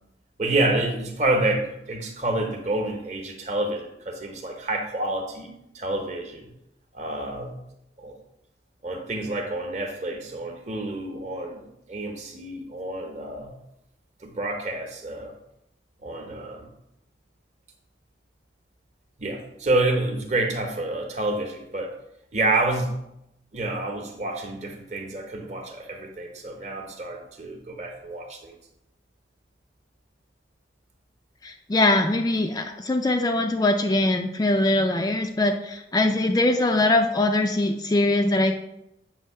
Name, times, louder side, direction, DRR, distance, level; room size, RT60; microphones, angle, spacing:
voice 1, 0.4-6.5 6.9-7.6 8.0-8.1 8.8-11.6 11.9-13.5 14.2-15.3 16.0-16.7 19.2-21.9 22.3-23.0 23.5-28.6, right 2 dB, 40° right, 3 dB, 0.9 m, -28 dB
voice 2, 31.4-38.5, left 2 dB, 20° left, 4 dB, 0.3 m, -22 dB
7.2 x 2.7 x 5.5 m, 0.82 s
head